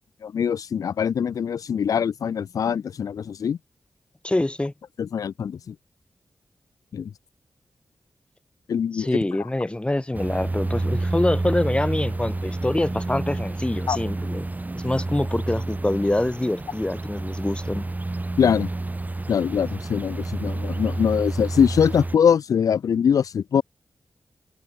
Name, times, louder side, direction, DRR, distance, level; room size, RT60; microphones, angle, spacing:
voice 1, 0.2-3.6 5.0-5.7 6.9-7.1 8.7-9.1 13.9-14.0 18.4-18.7 19.3-23.6, left 7 dB, 85° left, 0.7 m, -22 dB
voice 2, 4.2-4.7 8.9-14.5 14.8-17.9, left 1 dB, 20° left, 2.9 m, -25 dB
sound 1, 10.1-22.2, right 2 dB, 30° right, 5.2 m, -29 dB
cardioid pair, 60°, 6 cm